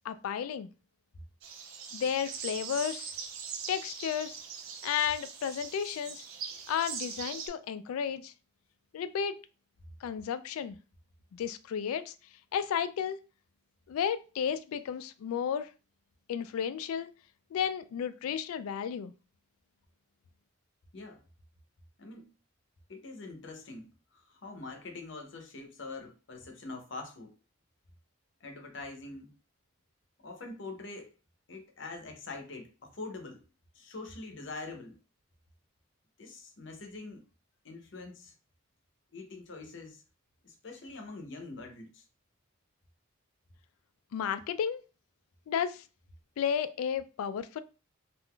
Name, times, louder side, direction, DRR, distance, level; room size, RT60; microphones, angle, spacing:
voice 1, 0.0-0.7 1.9-3.1 3.7-4.4 4.8-6.2 6.7-8.3 8.9-9.4 10.0-10.8 11.3-12.1 12.5-13.2 13.9-15.7 16.3-17.1 17.5-19.1 44.1-44.8 45.5-45.8 46.4-47.6, left 8 dB, 85° left, 0.3 m, -33 dB
sound 1, 1.4-7.5, right 6 dB, 75° right, 0.5 m, -41 dB
voice 2, 22.0-22.3 22.9-27.3 28.4-29.3 30.2-31.1 31.5-33.4 33.7-35.0 36.2-37.2 37.6-38.3 39.1-40.0 40.4-42.0, left 3 dB, 55° left, 0.7 m, -44 dB
3.5 x 2.5 x 2.2 m
head